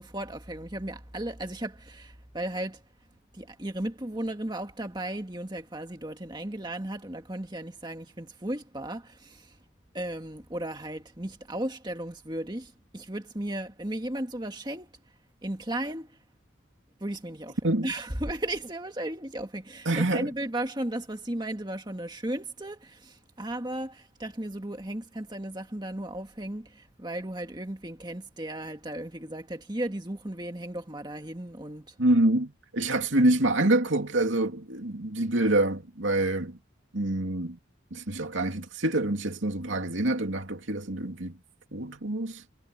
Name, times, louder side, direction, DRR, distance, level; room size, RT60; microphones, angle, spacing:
voice 1, 0.0-2.8 3.3-9.6 9.9-14.9 15.4-16.2 17.0-17.6 17.8-32.0, right 1 dB, 20° right, 1.9 m, -35 dB
voice 2, 19.9-20.3 32.0-36.6 36.9-37.6 37.9-41.3 41.7-42.4, right 1 dB, 75° right, 2.8 m, -26 dB
head